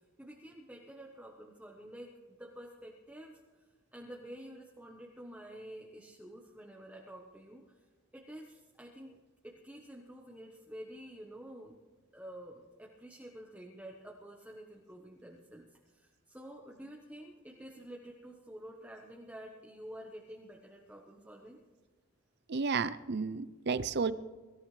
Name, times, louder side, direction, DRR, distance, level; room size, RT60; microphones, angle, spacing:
voice 1, 0.2-3.6 3.9-7.7 8.1-9.2 9.4-11.8 12.1-21.6, right 1 dB, 5° right, -1 dB, 1.1 m, -49 dB
voice 2, 22.5-24.1, right 5 dB, 55° right, 15 dB, 0.6 m, -32 dB
24.0 x 14.0 x 3.3 m, 1.3 s
head